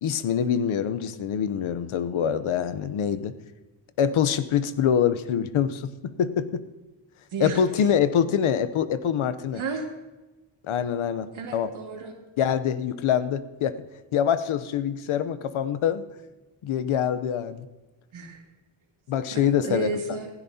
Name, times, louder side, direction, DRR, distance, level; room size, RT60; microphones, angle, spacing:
voice 1, 0.0-3.3 4.0-5.9 6.2-6.6 7.4-9.6 10.7-11.7 12.4-13.8 14.1-16.1 16.6-17.7 19.1-20.0, left 8 dB, 80° left, 13 dB, 0.9 m, -25 dB
voice 2, 7.3-7.6 9.5-9.9 11.3-12.1 18.1-18.4 19.3-20.3, right 4 dB, 75° right, 1 dB, 2.2 m, -32 dB
16.0 x 15.5 x 2.8 m, 1.1 s
cardioid pair, 65°, 49 cm